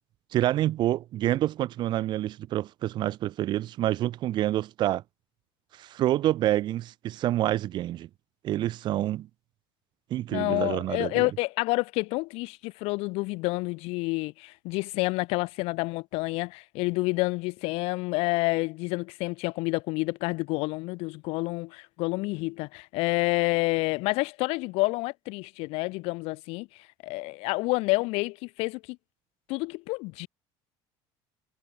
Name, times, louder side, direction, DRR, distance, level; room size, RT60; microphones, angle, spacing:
voice 1, 0.3-5.0 5.8-8.1 8.4-9.3 10.1-11.3, right 13 dB, 45° right, 1.0 m, -27 dB
voice 2, 10.3-26.7 27.0-29.0 29.5-30.3, left 24 dB, 65° left, 0.7 m, -29 dB
cardioid pair, 155°, 11 cm